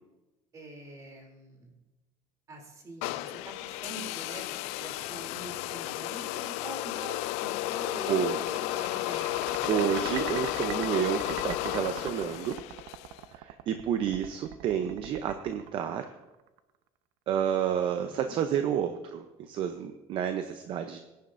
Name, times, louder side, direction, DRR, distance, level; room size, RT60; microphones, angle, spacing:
voice 1, 0.5-1.7 2.5-10.1 18.1-18.4, right 2 dB, 30° right, 1 dB, 3.1 m, -44 dB
sound 1, 3.0-13.2, left 17 dB, 75° left, 0.4 m, -33 dB
sound 2, 7.9-16.6, right 11 dB, 80° right, 0.7 m, -43 dB
voice 2, 9.7-12.6 13.3-16.0 17.3-21.0, right 9 dB, 50° right, 8 dB, 0.7 m, -30 dB
19.5 x 10.0 x 2.6 m, 1.1 s
cardioid pair, 140°, 11 cm